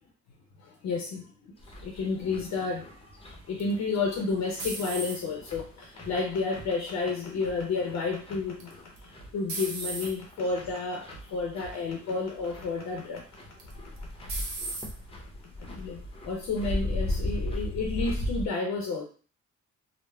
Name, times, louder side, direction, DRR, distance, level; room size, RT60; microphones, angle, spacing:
voice 1, 0.6-1.6 1.8-3.2 3.5-13.2 13.7-14.1 14.4-14.5 15.6-19.0, left 4 dB, 65° left, 1 dB, 0.6 m, -31 dB
sound 1, 1.6-18.5, left 1 dB, 20° left, 0.7 m, -38 dB
sound 2, 3.6-5.5 6.1-6.6 8.6-9.0 9.5-10.1 10.9-11.1 11.6-11.7 13.6-14.0 14.3-14.9, right 3 dB, 65° right, 0.8 m, -36 dB
3.2 x 2.0 x 2.2 m, 0.39 s
cardioid pair, 90°, 30 cm